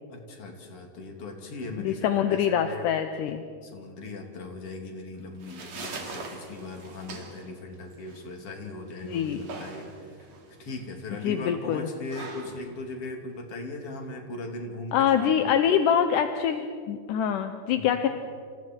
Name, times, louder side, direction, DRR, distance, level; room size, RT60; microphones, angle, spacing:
voice 1, 0.1-2.9 3.6-10.3 10.6-15.6 17.7-18.0, left 2 dB, 40° left, 2 dB, 3.3 m, -39 dB
voice 2, 1.8-3.4 5.8-5.9 9.0-9.4 11.2-11.9 14.9-18.1, left 8 dB, 75° left, 7 dB, 2.1 m, -25 dB
sound 1, 5.1-14.1, right 4 dB, 45° right, 3.3 m, -43 dB
30.0 x 27.5 x 4.6 m, 2.2 s
omnidirectional pair, 4.6 m